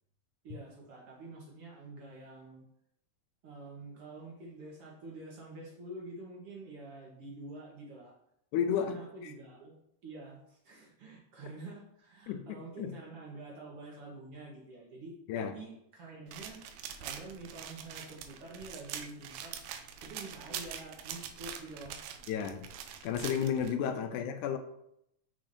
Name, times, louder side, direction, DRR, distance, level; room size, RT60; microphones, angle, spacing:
voice 1, 0.4-2.6 3.4-8.2 8.8-9.8 10.0-16.6 17.0-19.6 19.8-22.0 23.8-24.0, right 2 dB, 60° right, -2 dB, 1.7 m, -47 dB
voice 2, 8.5-9.0 12.3-12.9 15.3-15.5 22.3-22.7 23.0-24.6, left 8 dB, 90° left, 8 dB, 2.1 m, -32 dB
sound 1, 16.3-23.7, right 8 dB, 85° right, 2.1 m, -44 dB
6.9 x 5.8 x 2.6 m, 0.77 s
omnidirectional pair, 3.5 m